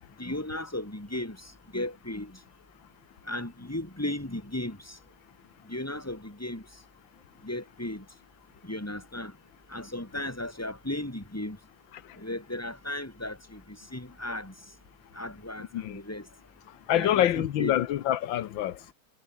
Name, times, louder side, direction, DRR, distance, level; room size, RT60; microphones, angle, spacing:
voice 1, 0.2-1.4 1.7-2.3 3.3-5.0 5.7-6.6 7.4-8.0 8.6-9.3 9.7-11.6 12.2-13.6 13.9-14.5 15.1-16.2 16.9-17.7, left 1 dB, 5° left, 3.1 m, -35 dB
voice 2, 16.9-18.7, left 12 dB, 80° left, 1.7 m, -25 dB
omnidirectional pair, 2.1 m